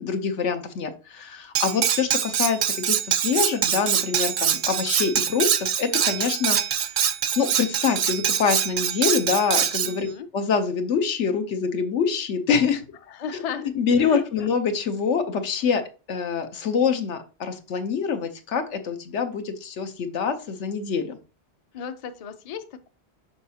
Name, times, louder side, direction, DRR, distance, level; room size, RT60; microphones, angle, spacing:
voice 1, 0.0-6.6 7.4-10.1 10.3-12.8 13.3-21.2, left 6 dB, 85° left, 1.2 m, -25 dB
Cutlery silverware, 1.6-9.9, right 9 dB, 55° right, 0.6 m, -24 dB
voice 2, 9.8-10.3 13.1-13.7 14.0-14.2 21.7-22.9, left 7 dB, 45° left, 0.5 m, -34 dB
6.6 x 5.5 x 2.8 m
omnidirectional pair, 1.2 m